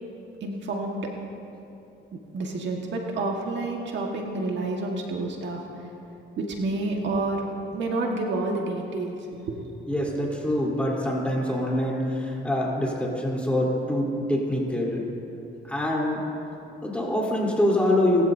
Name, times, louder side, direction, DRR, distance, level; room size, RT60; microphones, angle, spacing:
voice 1, 0.4-1.1 2.3-5.6 6.4-7.4 7.7-9.2 9.5-9.6, right 2 dB, 65° right, 0 dB, 1.7 m, -29 dB
voice 2, 9.9-15.0 15.6-16.2 16.8-18.3, left 1 dB, 5° left, -4 dB, 3.7 m, -25 dB
20.5 x 15.0 x 2.8 m, 2.8 s
cardioid pair, 90°, 20 cm